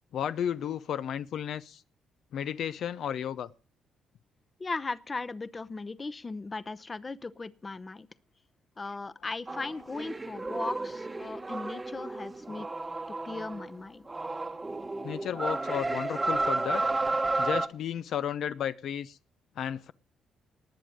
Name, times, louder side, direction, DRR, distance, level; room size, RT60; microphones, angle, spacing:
voice 1, 0.1-1.8 2.3-3.5 15.0-16.8 17.4-19.2 19.6-19.9, left 9 dB, 70° left, 0.6 m, -33 dB
voice 2, 4.6-8.1 8.8-12.7 13.2-14.1, left 3 dB, 25° left, 0.8 m, -37 dB
sound 1, 9.5-13.8 14.1-17.7, right 2 dB, 20° right, 1.0 m, -32 dB
19.5 x 7.4 x 6.5 m
cardioid pair, 90°, 0 cm